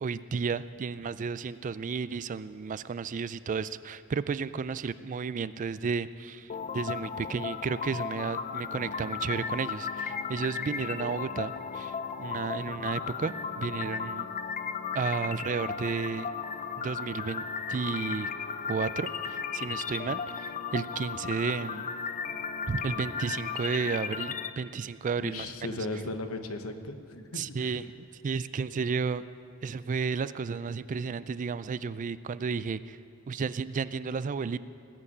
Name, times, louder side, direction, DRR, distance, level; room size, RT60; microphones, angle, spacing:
voice 1, 0.0-14.3 14.9-16.3 16.8-17.4 17.7-18.3 18.7-21.9 22.7-25.7 27.3-27.9 28.2-29.2 29.6-33.0 33.3-34.6, right 5 dB, 35° right, 15 dB, 0.3 m, -32 dB
sound 1, 6.5-24.5, left 6 dB, 35° left, 0.5 m, -35 dB
voice 2, 25.2-27.8, left 2 dB, 75° left, 7 dB, 1.1 m, -37 dB
19.5 x 7.0 x 8.6 m, 2.3 s
head